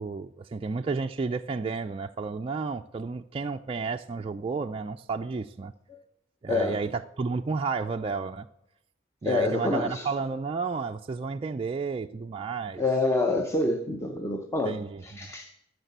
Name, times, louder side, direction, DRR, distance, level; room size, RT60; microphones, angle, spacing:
voice 1, 0.0-5.7 6.4-8.5 9.2-12.8 14.6-15.3, right 4 dB, 30° right, 4 dB, 0.3 m, -32 dB
voice 2, 9.2-10.1 12.8-15.5, left 2 dB, 15° left, 4 dB, 0.7 m, -27 dB
12.5 x 6.7 x 8.0 m, 0.86 s
head